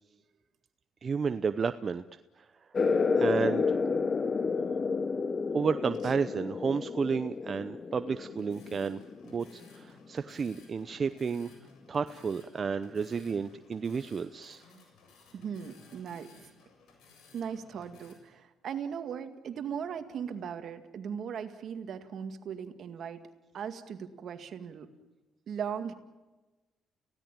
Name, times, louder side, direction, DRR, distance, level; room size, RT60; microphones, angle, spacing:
voice 1, 1.0-2.0 2.4-2.5 3.2-3.8 5.5-11.5 11.9-14.6, right 5 dB, 40° right, 10 dB, 0.8 m, -32 dB
sound 1, 2.7-9.9, left 4 dB, 40° left, 1.1 m, -31 dB
sound 2, 8.2-18.1, left 3 dB, 85° left, 7.0 m, -58 dB
voice 2, 15.3-16.3 17.3-23.2 23.5-24.9 25.5-25.9, right 7 dB, 65° right, 8 dB, 2.1 m, -38 dB
30.0 x 17.0 x 9.2 m, 1.2 s
cardioid pair, 90°, 0 cm